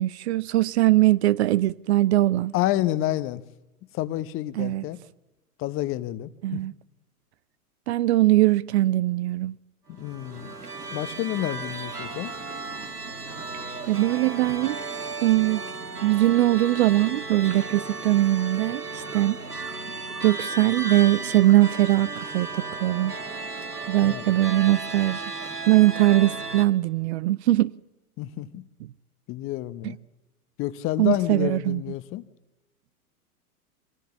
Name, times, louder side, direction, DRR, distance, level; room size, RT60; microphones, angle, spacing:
voice 1, 0.0-2.5 4.6-4.8 6.4-6.7 7.9-9.5 13.9-14.8 15.2-15.6 16.0-19.4 20.2-23.1 23.9-25.2 25.7-27.7 31.0-31.8, right 15 dB, 45° right, 0.6 m, -21 dB
voice 2, 2.5-3.4 3.9-5.0 5.6-6.6 10.0-10.5 10.9-12.3 24.0-24.2 28.2-28.7 29.3-30.0 30.6-32.2, left 14 dB, 30° left, 0.9 m, -29 dB
sound 1, 9.9-26.7, right 3 dB, 90° right, 1.7 m, -35 dB
23.5 x 17.0 x 7.1 m
figure-of-eight pair, 100°, 45 cm